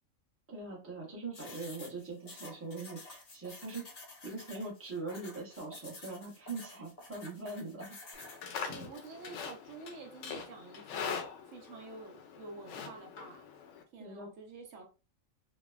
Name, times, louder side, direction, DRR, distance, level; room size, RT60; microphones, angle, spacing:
voice 1, 0.5-3.9 4.2-8.0 14.0-14.3, right 3 dB, 10° right, -3 dB, 0.7 m, -42 dB
sound 1, 1.3-8.4, left 2 dB, 50° left, 0.5 m, -50 dB
Livestock farm animals working animals, 8.1-13.8, left 6 dB, 70° left, 0.8 m, -42 dB
voice 2, 8.7-11.2 11.5-13.5 13.9-14.8, right 3 dB, 75° right, 2 dB, 1.0 m, -49 dB
3.2 x 2.1 x 2.2 m, 0.32 s
omnidirectional pair, 1.4 m